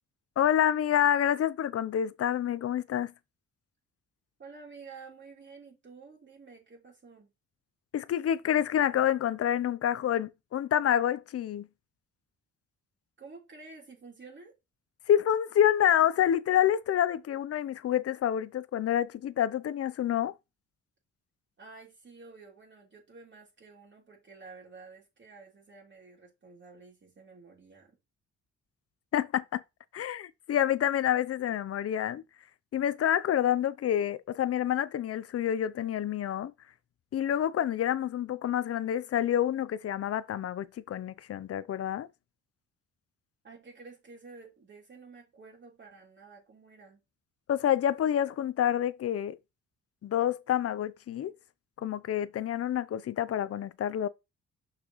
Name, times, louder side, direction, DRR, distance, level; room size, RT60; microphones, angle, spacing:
voice 1, 0.4-3.1 7.9-11.7 15.1-20.3 29.1-29.6 29.9-32.2 32.7-36.5 37.1-42.1 47.5-49.4 50.0-51.3 51.8-54.1, left 10 dB, 50° left, 0.7 m, -28 dB
voice 2, 4.4-7.3 13.2-14.5 21.6-28.0 43.4-47.0, right 4 dB, 40° right, 3.0 m, -51 dB
6.1 x 6.0 x 3.1 m
cardioid pair, 90°, 30 cm